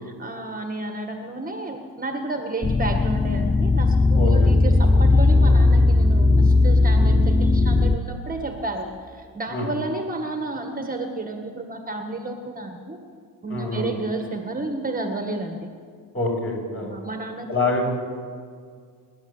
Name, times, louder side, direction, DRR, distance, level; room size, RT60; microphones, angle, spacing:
voice 1, 0.2-13.0 13.4-15.7 16.8-17.5, right 2 dB, 20° right, 4 dB, 1.7 m, -31 dB
sound 1, 2.6-8.0, left 3 dB, 10° left, 0.5 m, -17 dB
voice 2, 4.2-4.5 9.5-9.7 13.5-13.9 16.1-16.9 17.5-17.9, left 2 dB, 35° left, -1 dB, 7.0 m, -25 dB
27.0 x 11.0 x 8.9 m, 2.1 s
cardioid pair, 110°, 39 cm